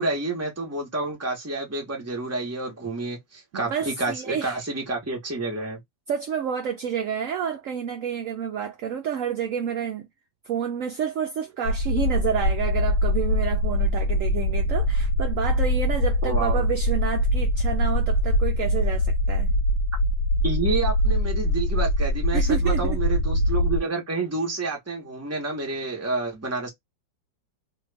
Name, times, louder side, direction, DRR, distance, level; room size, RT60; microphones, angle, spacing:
voice 1, 0.0-5.8 16.2-16.6 20.4-26.7, right 3 dB, 10° right, 0.8 m, -29 dB
voice 2, 3.5-4.6 6.1-10.0 10.5-19.6 22.3-23.0, right 8 dB, 75° right, 0.7 m, -29 dB
sound 1, 11.6-23.8, equal, 70° left, 1.0 m, -23 dB
3.0 x 2.5 x 3.3 m
omnidirectional pair, 2.0 m